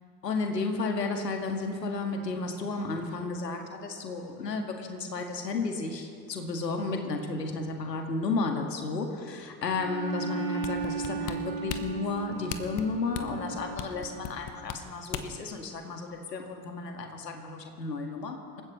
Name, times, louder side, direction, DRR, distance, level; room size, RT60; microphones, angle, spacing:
voice 1, 0.2-18.6, left 3 dB, 75° left, 4 dB, 2.0 m, -33 dB
Bowed string instrument, 9.7-14.4, right 4 dB, 85° right, 2.0 m, -36 dB
sound 1, 10.6-15.5 15.9-16.0, left 9 dB, 40° left, 1.2 m, -37 dB
28.0 x 15.5 x 3.3 m, 2.5 s
figure-of-eight pair, 70°, 49 cm